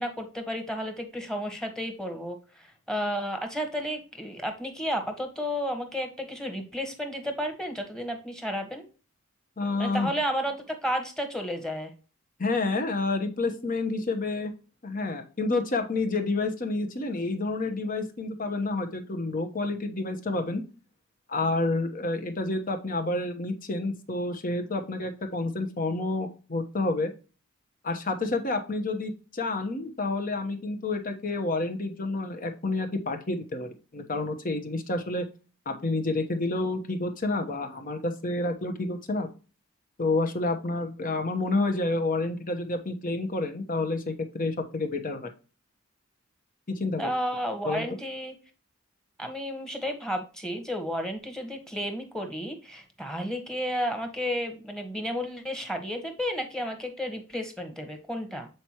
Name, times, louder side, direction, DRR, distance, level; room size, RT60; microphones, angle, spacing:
voice 1, 0.0-8.9 9.8-11.9 47.0-48.3 49.2-58.5, equal, 5° left, 5 dB, 1.3 m, -32 dB
voice 2, 9.6-10.1 12.4-14.5 14.8-20.6 21.3-27.1 27.8-35.2 35.7-39.3 40.0-45.3 46.7-47.1 47.6-47.9, left 2 dB, 40° left, 6 dB, 1.0 m, -29 dB
8.0 x 4.6 x 2.9 m, 0.35 s
head